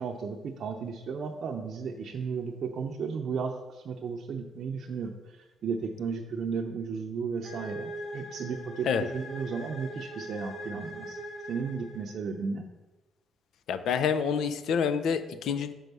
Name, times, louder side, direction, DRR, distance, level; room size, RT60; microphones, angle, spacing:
voice 1, 0.0-11.2 11.5-12.7, right 5 dB, 60° right, 1 dB, 0.6 m, -34 dB
sound 1, 7.4-12.3, right 1 dB, 50° left, 1.6 m, -41 dB
voice 2, 13.7-15.7, left 6 dB, 75° left, 11 dB, 0.5 m, -27 dB
6.3 x 4.6 x 5.4 m, 1.1 s
cardioid pair, 90°, 0 cm